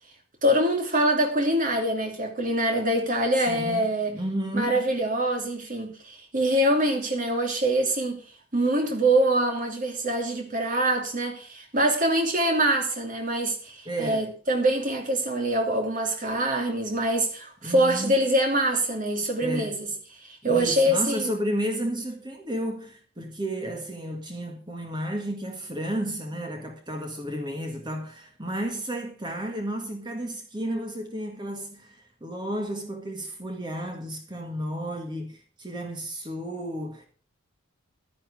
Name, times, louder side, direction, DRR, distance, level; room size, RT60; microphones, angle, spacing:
voice 1, 0.4-4.2 4.5-8.2 8.5-19.9 20.2-21.3, right 1 dB, 40° right, 2.9 m, -24 dB
voice 2, 3.4-4.8 13.8-14.3 17.6-18.2 19.4-19.8 20.4-37.1, right 1 dB, 20° right, 1.7 m, -32 dB
12.0 x 10.5 x 4.8 m
head